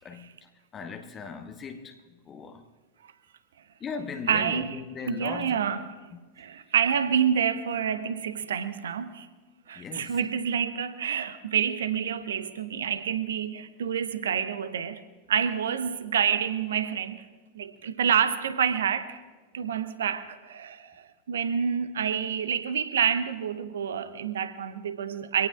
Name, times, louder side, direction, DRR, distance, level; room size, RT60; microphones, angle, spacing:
voice 1, 0.0-2.0 2.2-2.7 3.8-5.7 9.7-10.2, left 5 dB, 25° left, 1.2 m, -38 dB
voice 2, 4.3-4.8 5.1-5.9 6.4-9.3 9.7-15.0 15.3-17.2 17.5-19.2 19.5-25.5, right 8 dB, 65° right, 1.0 m, -28 dB
25.0 x 17.5 x 2.5 m
figure-of-eight pair, 90°, 0 cm